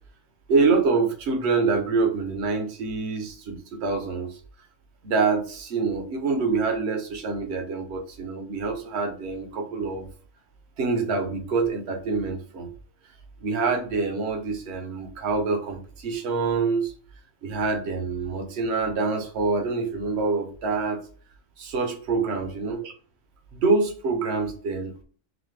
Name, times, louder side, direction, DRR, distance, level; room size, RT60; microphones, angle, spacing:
voice 1, 0.5-4.4 5.0-10.1 10.8-12.7 13.4-16.9 17.4-21.0 21.6-22.9 23.6-24.9, right 4 dB, 55° right, 5 dB, 0.9 m, -26 dB
4.0 x 2.7 x 3.2 m, 0.42 s
omnidirectional pair, 1.5 m